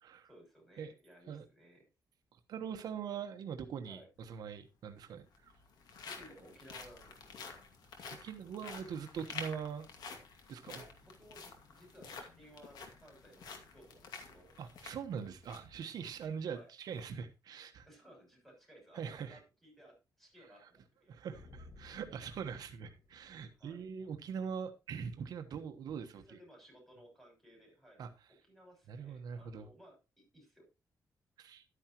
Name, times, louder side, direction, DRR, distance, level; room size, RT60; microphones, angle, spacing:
voice 1, 0.2-1.8 3.8-4.1 6.0-7.4 10.7-14.6 16.5-16.7 17.8-21.1 23.5-23.8 26.1-28.0 28.4-30.7, right 1 dB, 5° left, 6.4 m, -59 dB
voice 2, 2.3-5.5 8.2-9.9 10.5-10.8 14.6-17.9 18.9-19.4 20.6-20.7 21.1-26.4 28.0-28.1 28.9-29.7 31.4-31.6, right 7 dB, 75° right, 1.2 m, -42 dB
sound 1, 4.2-4.3 5.2-15.7 16.1-16.3 16.8-17.0, left 5 dB, 85° left, 2.4 m, -50 dB
sound 2, 21.3-23.9, left 2 dB, 55° left, 1.8 m, -57 dB
12.0 x 9.8 x 3.0 m
wide cardioid pair, 155°, 7 cm